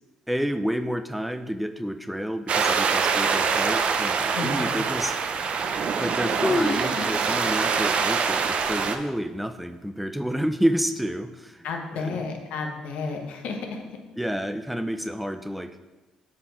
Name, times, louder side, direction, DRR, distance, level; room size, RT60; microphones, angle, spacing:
voice 1, 0.3-5.1 6.0-11.7 11.9-12.2 14.2-15.8, equal, ahead, 8 dB, 0.4 m, -29 dB
sound 1, 2.5-9.0, right 5 dB, 55° right, 0.6 m, -24 dB
voice 2, 4.3-4.8 11.6-14.0, left 4 dB, 70° left, 3 dB, 1.0 m, -32 dB
sound 2, 5.6-6.1 6.4-7.1 7.5-7.6 8.3-8.4 9.1-9.5, left 2 dB, 30° left, 2.0 m, -27 dB
7.0 x 4.3 x 4.4 m, 1.1 s
hypercardioid pair, 55°, 2 cm